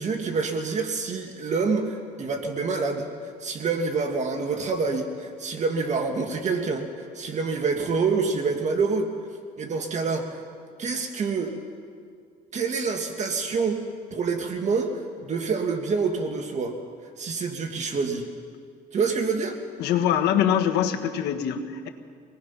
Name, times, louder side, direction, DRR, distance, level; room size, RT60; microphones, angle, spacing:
voice 1, 0.0-9.1 9.6-10.4 10.8-11.5 12.5-13.8 14.1-16.7 17.2-18.2 18.9-19.6, right 4 dB, 45° right, 4 dB, 1.9 m, -27 dB
voice 2, 19.8-21.9, left 9 dB, 80° left, 5 dB, 1.6 m, -23 dB
24.5 x 19.0 x 5.8 m, 2.1 s
cardioid pair, 110°, 17 cm